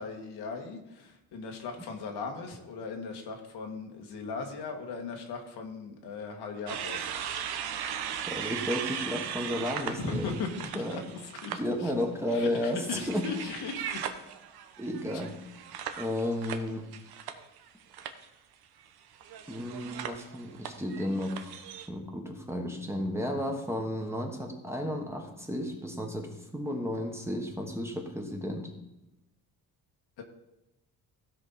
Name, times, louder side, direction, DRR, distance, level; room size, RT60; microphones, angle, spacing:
voice 1, 0.0-7.1 9.9-11.9 12.3-14.1 30.2-30.3, left 4 dB, 85° left, 2 dB, 1.8 m, -38 dB
sound 1, 6.7-11.6 12.0-17.7 17.9-18.3 19.2-21.9, right 8 dB, 75° right, 1.0 m, -38 dB
voice 2, 8.3-10.4 10.7-11.0 11.5-13.3 14.8-15.3 16.0-16.9 19.5-21.6 21.9-28.7, left 1 dB, 5° right, 2 dB, 1.4 m, -33 dB
15.5 x 5.4 x 4.2 m, 0.95 s
cardioid pair, 125°, 38 cm